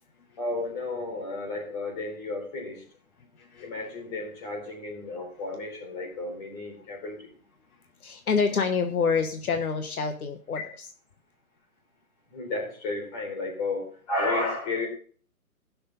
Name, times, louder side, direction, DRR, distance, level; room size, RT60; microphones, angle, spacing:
voice 1, 0.4-2.8 3.6-7.3 10.5-10.6 12.3-14.9, left 2 dB, 25° left, 1 dB, 3.8 m, -32 dB
voice 2, 8.0-10.6, left 5 dB, 75° left, 6 dB, 1.3 m, -26 dB
16.0 x 6.6 x 3.9 m, 0.43 s
hypercardioid pair, 160°, 44 cm